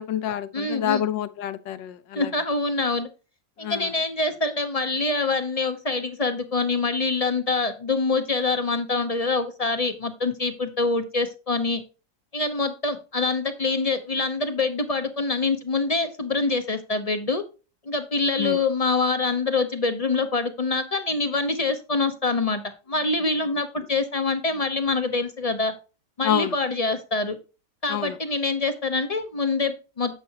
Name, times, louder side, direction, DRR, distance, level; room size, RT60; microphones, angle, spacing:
voice 1, 0.0-2.3 3.6-3.9 18.4-18.6 26.2-26.5 27.9-28.2, left 11 dB, 80° left, 1.5 m, -28 dB
voice 2, 0.5-1.0 2.2-3.1 3.6-11.8 12.3-17.4 17.9-22.6 22.9-25.7 26.2-27.4 27.8-30.2, left 3 dB, 40° left, 0.5 m, -25 dB
10.0 x 7.5 x 2.9 m
omnidirectional pair, 2.0 m